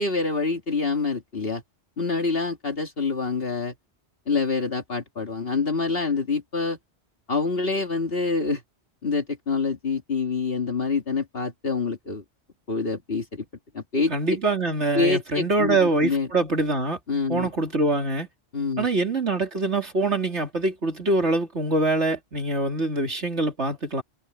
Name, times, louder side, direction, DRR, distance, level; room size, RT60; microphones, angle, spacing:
voice 1, 0.0-1.6 2.0-3.7 4.3-6.8 7.3-8.6 9.0-12.2 12.7-13.4 13.7-14.1 15.0-16.3 17.1-17.5 18.5-18.9, left 4 dB, 55° left, 2.3 m, -26 dB
voice 2, 14.1-17.0 17.3-18.3 18.8-24.0, right 2 dB, 75° right, 3.6 m, -24 dB
omnidirectional pair, 1.2 m